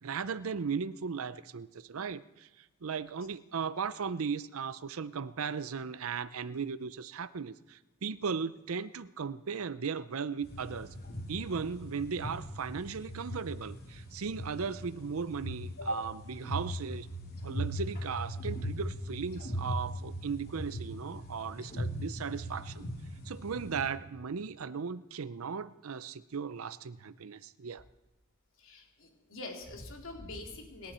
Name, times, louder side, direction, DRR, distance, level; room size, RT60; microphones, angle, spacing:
voice 1, 0.0-10.9 11.3-17.1 17.4-22.9 23.2-27.8, right 6 dB, 80° right, 14 dB, 0.6 m, -37 dB
sound 1, 10.4-23.9, equal, 45° left, 2.9 m, -40 dB
voice 2, 28.6-30.9, left 1 dB, 65° left, 1 dB, 3.3 m, -41 dB
27.5 x 11.5 x 4.4 m, 1.1 s
head